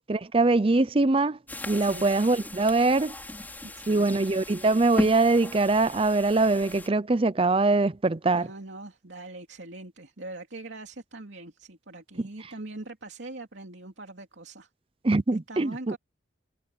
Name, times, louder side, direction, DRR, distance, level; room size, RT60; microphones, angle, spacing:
voice 1, 0.1-1.4 1.7-3.1 3.9-8.5 15.0-15.7, right 3 dB, 30° right, 0.6 m, -23 dB
sound 1, 1.5-6.9, left 1 dB, 10° left, 5.4 m, -37 dB
voice 2, 1.8-2.1 3.6-4.3 8.3-14.7 15.3-16.0, right 2 dB, 80° right, 2.8 m, -42 dB
head